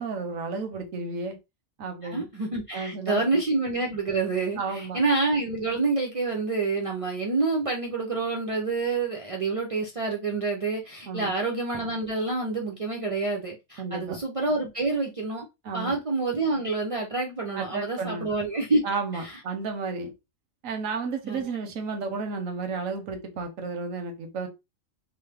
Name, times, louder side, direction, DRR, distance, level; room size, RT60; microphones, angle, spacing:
voice 1, 0.0-1.4 1.8-2.3 2.7-3.2 4.6-5.0 11.1-11.3 13.8-14.2 15.6-15.9 17.5-18.3 18.8-20.1 20.6-24.5, right 4 dB, 90° right, 1.1 m, -32 dB
voice 2, 2.0-15.5 15.7-18.8 19.1-19.4 21.2-21.5, right 3 dB, 55° right, 0.3 m, -27 dB
3.1 x 2.0 x 3.3 m
omnidirectional pair, 1.4 m